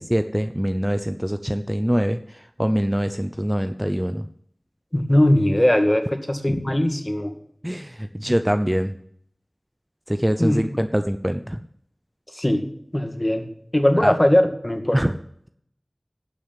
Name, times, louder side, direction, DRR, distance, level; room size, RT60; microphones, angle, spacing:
voice 1, 0.0-4.2 7.6-9.0 10.1-11.6 14.0-14.1 14.9-15.1, equal, 10° right, 9 dB, 0.6 m, -24 dB
voice 2, 4.9-7.3 10.4-10.6 12.3-12.6 12.9-13.5 13.7-15.0, left 1 dB, 25° left, 5 dB, 2.0 m, -20 dB
11.5 x 6.4 x 9.2 m, 0.69 s
wide cardioid pair, 40°, 0 cm